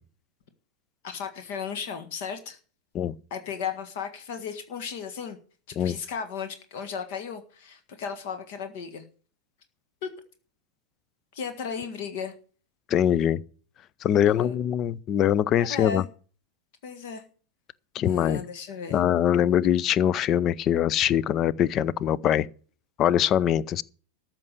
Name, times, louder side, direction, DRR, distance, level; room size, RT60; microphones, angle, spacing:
voice 1, 1.0-2.6 3.3-5.4 5.7-9.0 10.0-10.1 11.3-12.3 14.2-14.5 15.6-16.1 16.8-17.2 18.0-19.0, left 6 dB, 50° left, 1.7 m, -35 dB
voice 2, 12.9-13.4 14.0-16.0 17.9-18.4 18.9-22.5 23.0-23.8, left 10 dB, 30° left, 0.5 m, -23 dB
14.0 x 6.0 x 8.1 m
figure-of-eight pair, 90°, 0 cm